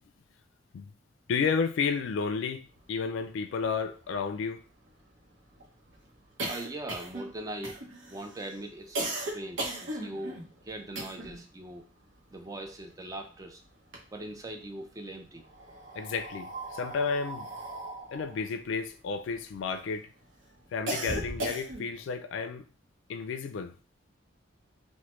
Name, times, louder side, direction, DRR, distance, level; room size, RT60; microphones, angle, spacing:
voice 1, 1.3-4.6 15.9-17.5 18.1-20.1 20.7-22.6 23.1-23.7, left 5 dB, 70° left, 0.3 m, -32 dB
sound 1, 3.3-3.4 3.6-3.7 4.0-11.5 11.8-13.3 13.7-14.6 15.4-19.8 20.3-22.0, right 2 dB, 80° right, 0.8 m, -38 dB
voice 2, 6.4-7.8 8.1-10.4 10.6-11.9 12.3-13.6 14.1-15.5, right 1 dB, 20° right, 0.4 m, -41 dB
3.1 x 2.1 x 3.0 m
head